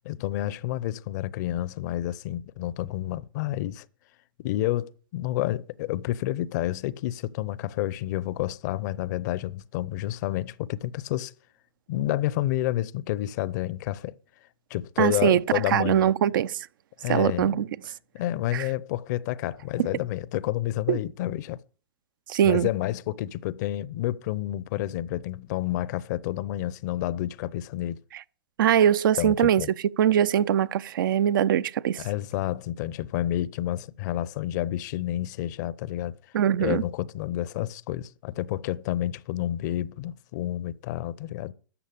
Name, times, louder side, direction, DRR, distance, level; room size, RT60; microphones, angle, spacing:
voice 1, 0.0-3.9 4.4-11.3 11.9-14.2 14.7-16.1 17.0-17.6 18.1-21.6 22.4-28.0 29.2-29.7 32.0-36.1 36.6-41.5, left 14 dB, 50° left, 0.7 m, -29 dB
voice 2, 15.0-15.4 15.7-16.7 17.1-17.7 18.5-18.6 20.9-21.0 22.3-22.7 28.6-29.6 30.0-32.0 36.3-36.8, right 10 dB, 65° right, 0.6 m, -22 dB
13.0 x 5.4 x 8.4 m
hypercardioid pair, 110°, 12 cm